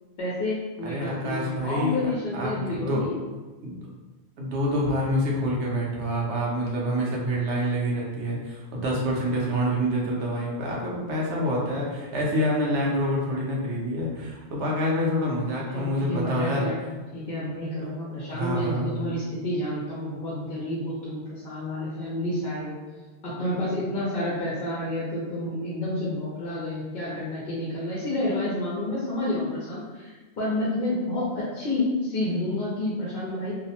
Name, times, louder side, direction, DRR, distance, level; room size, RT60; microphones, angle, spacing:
voice 1, 0.2-3.2 15.7-16.8 17.1-22.7 23.2-33.5, left 1 dB, 55° left, -7 dB, 0.8 m, -29 dB
voice 2, 0.8-2.0 2.3-3.0 3.6-3.8 4.4-16.7 18.3-19.0, equal, 85° right, -3 dB, 1.0 m, -27 dB
2.6 x 2.0 x 2.8 m, 1.3 s
omnidirectional pair, 1.1 m